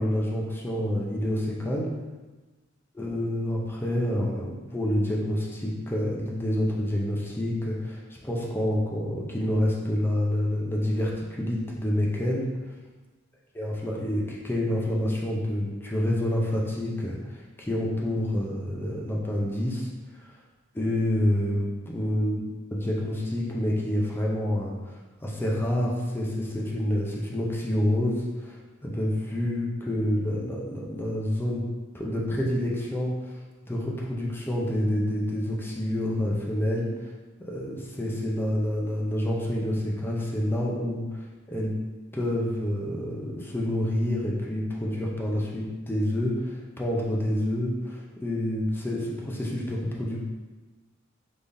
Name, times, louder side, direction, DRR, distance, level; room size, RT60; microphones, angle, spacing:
voice 1, 0.0-1.9 2.9-12.5 13.6-19.9 20.7-22.4 22.7-28.6 28.8-31.6 31.9-33.3 33.7-36.9 37.5-41.7 42.1-50.2, left 1 dB, 10° left, -3 dB, 0.6 m, -28 dB
3.5 x 3.4 x 2.6 m, 1.2 s
head